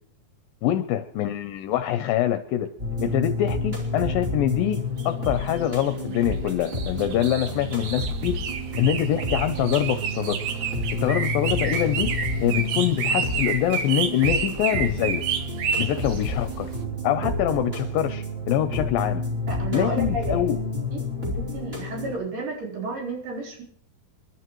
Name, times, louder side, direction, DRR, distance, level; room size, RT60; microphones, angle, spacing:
voice 1, 0.6-2.7 3.0-8.4 8.8-10.4 11.0-12.1 12.4-15.2 15.8-16.7 17.0-19.2 19.7-20.6, left 11 dB, 80° left, 9 dB, 2.3 m, -24 dB
sound 1, 2.8-22.1, left 1 dB, 15° right, 3.1 m, -30 dB
sound 2, 5.0-16.8, right 7 dB, 65° right, 2.2 m, -30 dB
voice 2, 19.5-20.5 20.9-23.6, right 3 dB, 85° right, -2 dB, 5.7 m, -32 dB
29.0 x 11.5 x 3.1 m, 0.63 s
omnidirectional pair, 4.3 m